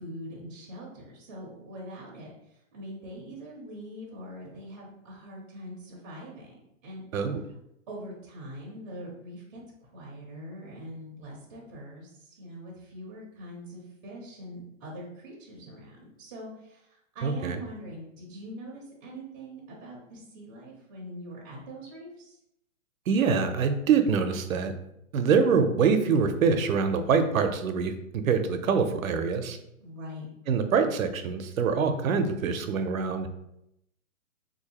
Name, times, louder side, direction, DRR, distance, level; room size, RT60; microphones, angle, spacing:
voice 1, 0.0-7.1 7.9-22.4 29.8-30.3, equal, 25° right, -4 dB, 0.6 m, -43 dB
voice 2, 17.2-17.6 23.1-24.7 25.1-29.6 30.5-33.3, right 5 dB, 90° right, 8 dB, 0.6 m, -25 dB
3.6 x 2.7 x 2.8 m, 0.81 s
hypercardioid pair, 160°, 40 cm